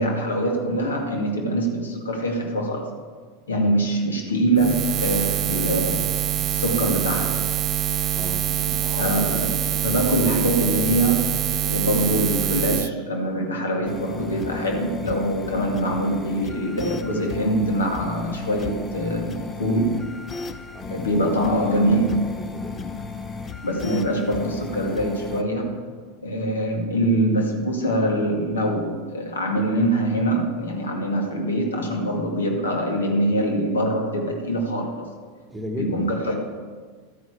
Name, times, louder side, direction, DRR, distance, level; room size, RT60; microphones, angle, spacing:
voice 1, 0.0-2.9 3.5-7.4 8.5-11.3 11.7-20.0 20.9-22.2 23.6-25.8 26.2-35.1 35.8-36.3, right 1 dB, 70° left, 2 dB, 2.1 m, -24 dB
Buzz, 4.6-12.9, right 11 dB, 35° right, 0.3 m, -25 dB
sound 1, 13.8-25.4, left 4 dB, 25° left, 0.7 m, -34 dB
voice 2, 20.7-21.1 22.1-23.0 35.5-36.1, left 1 dB, 10° right, 5 dB, 1.3 m, -35 dB
13.0 x 9.4 x 4.8 m, 1.5 s
figure-of-eight pair, 85°, 0 cm